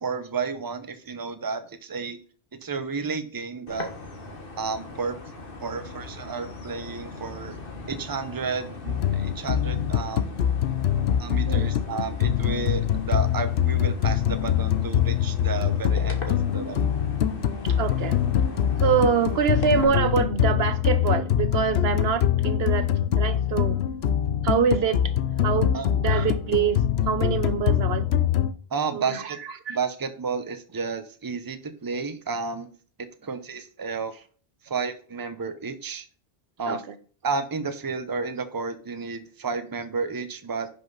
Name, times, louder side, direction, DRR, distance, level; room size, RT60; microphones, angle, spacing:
voice 1, 0.0-2.2 2.6-3.9 4.6-5.2 5.6-7.6 7.9-10.3 11.2-16.9 25.7-25.9 28.7-29.4 29.7-32.7 33.0-34.2 34.6-36.1 36.6-36.8 37.2-40.7, right 5 dB, 25° right, 0.8 m, -31 dB
sound 1, 3.7-19.8, left 3 dB, 60° left, 1.7 m, -40 dB
sound 2, 8.9-28.5, left 10 dB, 85° left, 0.9 m, -24 dB
voice 2, 17.6-18.2 18.8-22.9 23.2-23.8 24.4-25.1 25.4-26.8 27.1-28.1 28.9-29.8 36.7-36.9, right 6 dB, 75° right, 1.1 m, -25 dB
10.5 x 5.8 x 4.0 m
omnidirectional pair, 1.0 m